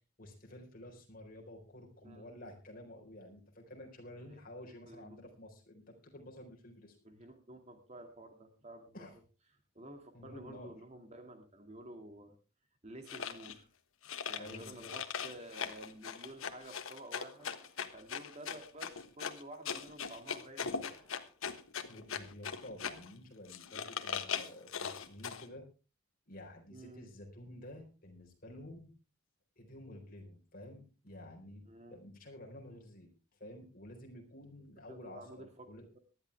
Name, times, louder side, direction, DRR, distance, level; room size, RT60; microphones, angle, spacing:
voice 1, 0.2-7.0 8.9-9.1 10.1-10.7 14.4-14.9 21.9-25.7 26.3-28.9 29.6-33.1 33.4-35.8, left 1 dB, 45° left, 2 dB, 4.2 m, -51 dB
voice 2, 2.0-2.5 4.7-5.3 7.0-9.1 9.7-12.4 12.8-13.7 14.3-17.5 17.9-20.9 26.7-27.1 31.6-32.0 34.9-35.7, right 1 dB, 35° right, 6 dB, 2.2 m, -51 dB
sound 1, 13.1-13.6 14.0-23.1 23.5-25.5, left 6 dB, 80° left, 1.3 m, -40 dB
sound 2, 17.4-18.5 20.8-21.8 24.3-25.1, left 2 dB, 25° left, 6.7 m, -65 dB
19.0 x 12.5 x 3.4 m, 0.32 s
head